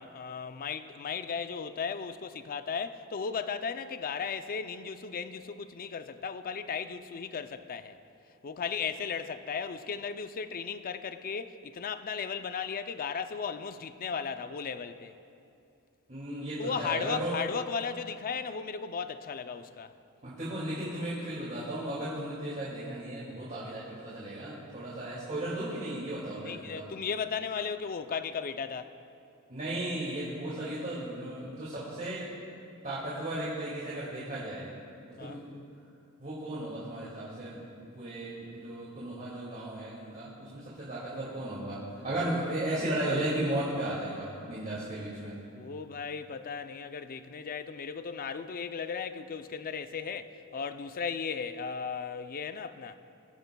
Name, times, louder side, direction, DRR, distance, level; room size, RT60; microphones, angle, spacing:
voice 1, 0.0-8.0 8.4-15.2 16.6-19.9 24.9-25.0 26.4-28.9 35.2-35.4 45.5-53.0, left 6 dB, 40° left, 0.4 m, -36 dB
voice 2, 16.1-17.3 20.2-27.0 29.5-32.3 32.8-34.7 35.0-35.6 36.2-37.6 38.0-45.3, right 1 dB, 40° right, 2.2 m, -35 dB
21.0 x 10.5 x 2.3 m
head